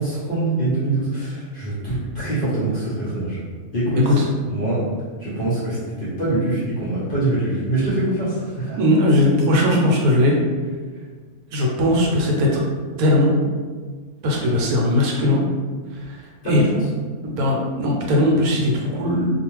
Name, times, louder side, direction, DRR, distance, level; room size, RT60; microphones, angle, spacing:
voice 1, 0.0-3.4 3.7-4.0 4.5-4.8 5.2-8.8 16.4-16.6, right 2 dB, 50° left, -9 dB, 0.7 m, -24 dB
voice 2, 3.9-4.3 8.8-10.4 11.5-12.6 13.0-13.4 14.2-15.4 15.9-16.6 17.2-19.3, left 1 dB, 80° right, -1 dB, 1.1 m, -19 dB
2.4 x 2.3 x 3.0 m, 1.5 s
omnidirectional pair, 1.6 m